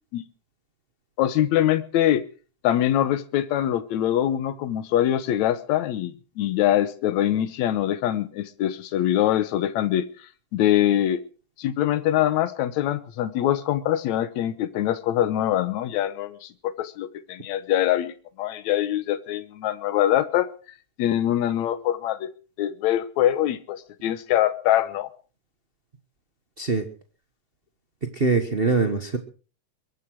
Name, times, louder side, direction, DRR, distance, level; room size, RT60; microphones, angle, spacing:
voice 1, 1.2-2.3 2.6-10.1 10.5-11.2 11.6-18.1 18.4-20.5 21.0-22.3 22.6-25.1, left 12 dB, 75° left, 2.3 m, -23 dB
voice 2, 26.6-26.9 28.0-29.2, right 4 dB, 60° right, 0.6 m, -23 dB
22.5 x 8.4 x 6.3 m
omnidirectional pair, 3.4 m